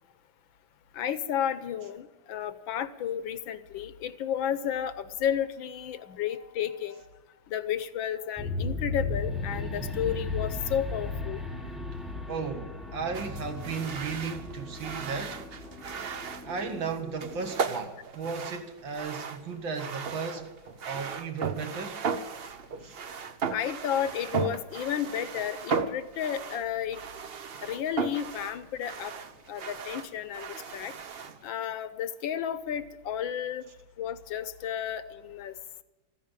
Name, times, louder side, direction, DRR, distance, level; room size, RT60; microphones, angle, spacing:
voice 1, 0.9-7.0 7.5-11.4 23.5-27.0 27.6-29.1 29.5-30.9 31.4-33.7 34.0-35.5, left 9 dB, 70° left, 1.5 m, -32 dB
sound 1, 8.4-17.6, left 3 dB, ahead, 0.7 m, -36 dB
voice 2, 12.3-15.4 16.5-20.5 20.8-22.1 22.8-23.0, right 5 dB, 65° right, 2.3 m, -35 dB
sound 2, 13.1-31.5, right 5 dB, 85° right, 0.5 m, -36 dB
14.0 x 9.7 x 9.0 m
omnidirectional pair, 2.3 m